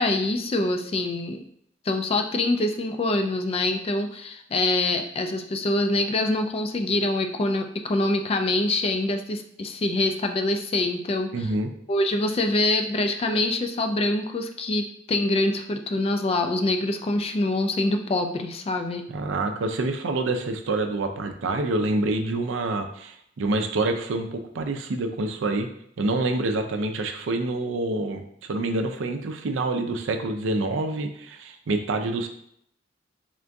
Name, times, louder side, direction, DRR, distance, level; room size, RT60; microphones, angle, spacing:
voice 1, 0.0-1.4 1.9-11.3 11.9-19.0, left 2 dB, 30° left, 6 dB, 0.3 m, -25 dB
voice 2, 11.3-11.7 19.1-25.7 26.0-32.3, right 2 dB, 80° right, 6 dB, 0.4 m, -27 dB
3.6 x 2.6 x 3.4 m, 0.70 s
head